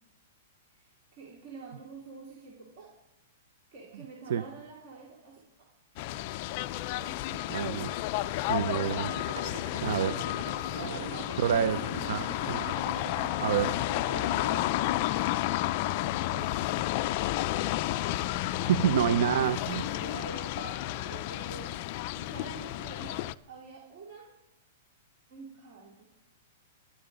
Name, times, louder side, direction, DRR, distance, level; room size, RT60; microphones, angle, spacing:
voice 1, 0.7-2.9 3.7-5.7 6.9-7.4 8.8-13.2 14.0-16.5 17.1-17.9 18.4-19.3 19.7-24.3 25.3-26.1, right 5 dB, 35° right, -2 dB, 2.5 m, -48 dB
sound 1, 6.0-23.3, left 15 dB, 30° left, 0.4 m, -31 dB
voice 2, 7.5-7.9 8.5-9.1 9.8-10.2 11.4-11.8 12.1-12.6 13.4-13.7 18.6-19.9, right 9 dB, 55° right, 13 dB, 0.6 m, -27 dB
Zipper (clothing), 8.7-14.6, right 6 dB, 70° right, 1.6 m, -44 dB
16.0 x 11.5 x 5.2 m, 0.88 s
supercardioid pair, 180°, 0 cm